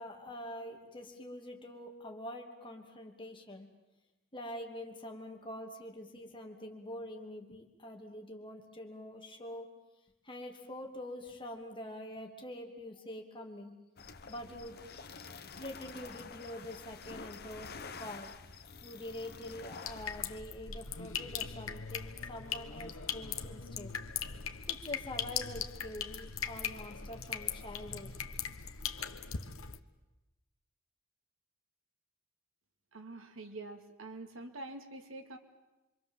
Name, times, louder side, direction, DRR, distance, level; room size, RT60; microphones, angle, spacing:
voice 1, 0.0-3.7 4.3-9.7 10.2-13.8 14.3-14.8 15.6-18.3 18.8-23.9 24.7-28.1, left 1 dB, 25° left, 2 dB, 2.8 m, -45 dB
sound 1, 14.0-20.4, left 4 dB, 50° left, 1.1 m, -48 dB
sound 2, 19.9-29.8, left 7 dB, 85° left, 1.3 m, -40 dB
voice 2, 32.9-35.4, right 2 dB, 75° right, 6 dB, 2.4 m, -46 dB
26.5 x 25.0 x 7.5 m, 1.0 s
head